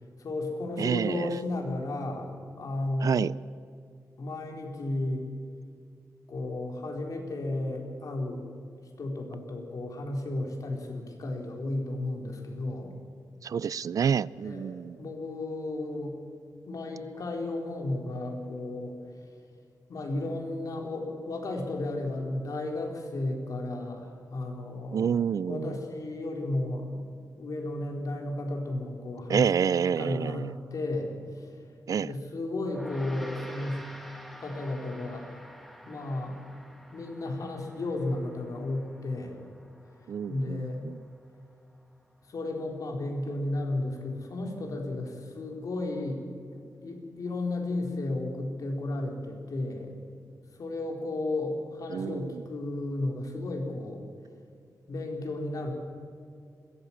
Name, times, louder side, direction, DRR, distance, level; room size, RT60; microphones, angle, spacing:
voice 1, 0.2-3.3 4.2-5.3 6.3-8.5 8.8-12.9 14.4-16.2 16.7-19.0 19.9-25.2 25.5-27.0 27.4-29.5 30.0-31.5 32.0-33.8 34.4-35.4 35.9-36.4 36.9-39.4 40.3-40.8 42.3-46.2 46.5-50.0 50.6-54.0 54.9-55.7, left 2 dB, 65° left, 1 dB, 4.1 m, -33 dB
voice 2, 0.8-1.3 3.0-3.3 13.4-15.0 24.9-25.7 29.3-30.5 31.9-32.1 40.1-41.0 51.9-52.4, right 7 dB, 60° right, 20 dB, 0.4 m, -28 dB
Gong, 32.6-42.2, equal, ahead, 1.9 m, -50 dB
21.5 x 17.0 x 7.3 m, 2.3 s
wide cardioid pair, 140°, 6 cm